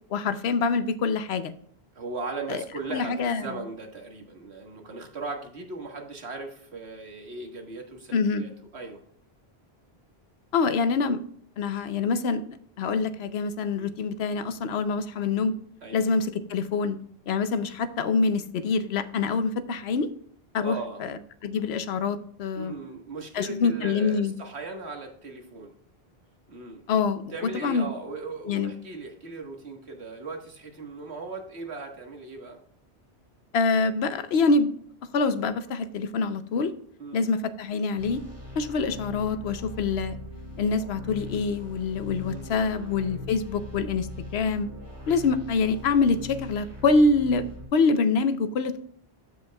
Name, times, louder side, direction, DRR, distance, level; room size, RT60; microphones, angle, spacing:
voice 1, 0.1-1.5 2.5-2.6 2.9-3.5 8.1-8.4 10.5-11.2 11.6-12.4 12.8-15.5 15.9-17.0 17.3-20.1 20.5-22.7 23.3-24.3 26.9-27.2 27.5-27.9 28.5-28.7 33.5-34.7 35.1-36.7 37.1-38.2 38.6-40.2 40.6-44.7 45.1-47.4 47.7-48.8, left 4 dB, 75° left, 12 dB, 1.0 m, -25 dB
voice 2, 1.9-9.0 12.8-13.0 13.7-13.9 15.8-16.0 20.6-21.0 22.5-25.7 26.5-26.8 27.3-32.6 37.0-37.3 42.3-43.0, right 3 dB, 80° right, 3 dB, 1.8 m, -38 dB
sound 1, 38.0-47.7, left 2 dB, 45° right, 2.7 m, -41 dB
14.0 x 5.5 x 2.3 m, 0.63 s
omnidirectional pair, 1.1 m